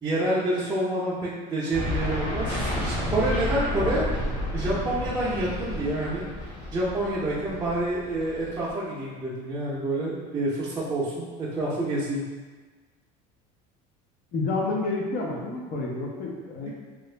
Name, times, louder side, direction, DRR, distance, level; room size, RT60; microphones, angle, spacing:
voice 1, 0.0-4.1 4.5-6.3 6.7-12.2 16.6-16.7, right 1 dB, 15° right, -8 dB, 0.6 m, -28 dB
sound 1, 1.7-8.7, left 1 dB, 70° left, 1.2 m, -31 dB
voice 2, 14.3-16.7, left 3 dB, 45° left, -1 dB, 0.8 m, -29 dB
2.9 x 2.5 x 3.2 m, 1.4 s
cardioid pair, 130°, 20 cm